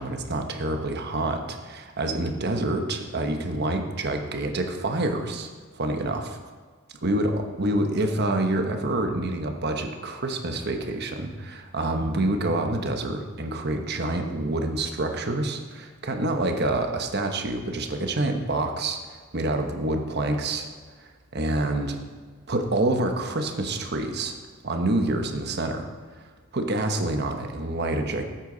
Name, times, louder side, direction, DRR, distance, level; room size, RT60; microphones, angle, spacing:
voice 1, 0.0-5.5 5.7-6.4 7.0-7.3 7.6-20.7 21.0-22.0 22.5-24.3 24.6-25.9 26.5-28.2, right 2 dB, 50° right, 5 dB, 1.1 m, -27 dB
13.0 x 8.9 x 3.9 m, 1.5 s
head